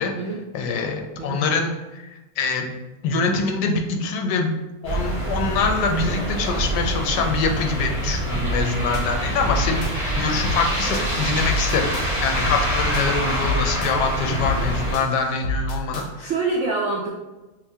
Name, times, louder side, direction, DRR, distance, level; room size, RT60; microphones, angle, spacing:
voice 1, 0.5-2.7 3.0-4.6 4.8-16.3, left 4 dB, 85° left, 3 dB, 1.2 m, -24 dB
sound 1, 4.8-15.0, right 1 dB, 30° right, 1.4 m, -25 dB
sound 2, 8.4-8.7 8.9-9.9 10.4-10.7 10.9-12.1 12.4-12.7 12.9-13.9 14.4-14.7 14.9-16.1, left 2 dB, 60° left, 0.8 m, -29 dB
voice 2, 16.2-17.1, right 3 dB, 80° right, -2 dB, 0.6 m, -25 dB
5.5 x 2.1 x 2.7 m, 1.1 s
omnidirectional pair, 1.8 m